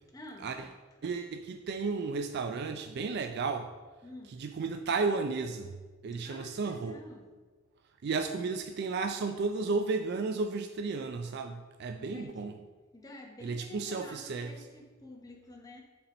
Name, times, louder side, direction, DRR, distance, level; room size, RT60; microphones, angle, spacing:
voice 1, 0.1-0.6 4.0-4.4 6.2-7.3 12.0-12.6 12.9-15.8, left 1 dB, 15° left, 1 dB, 0.8 m, -49 dB
voice 2, 1.0-3.7 4.4-5.7 6.0-7.0 8.0-12.5 13.4-14.5, right 4 dB, 45° right, 6 dB, 0.3 m, -33 dB
6.7 x 4.3 x 5.2 m, 1.4 s
head